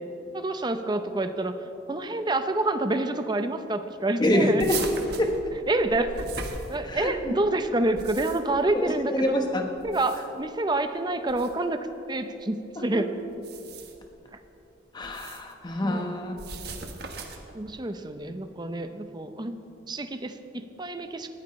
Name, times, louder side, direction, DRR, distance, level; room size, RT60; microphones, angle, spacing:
voice 1, 0.3-1.6 1.9-4.7 5.7-6.2 6.7-9.2 9.8-11.8 12.1-13.1 15.8-16.0 17.5-19.6 19.9-21.3, right 2 dB, 25° right, 8 dB, 0.7 m, -27 dB
voice 2, 4.2-4.8 5.2-5.6 6.9-7.4 8.7-9.7 12.8-13.1 14.9-16.4, left 1 dB, 25° left, 4 dB, 1.1 m, -26 dB
sound 1, 4.6-7.2 7.8-8.6 9.8-10.5 11.3-11.5 13.3-14.1 15.0-15.5 16.4-17.5, right 4 dB, 55° right, 1.3 m, -38 dB
19.5 x 14.0 x 3.2 m, 2.8 s
head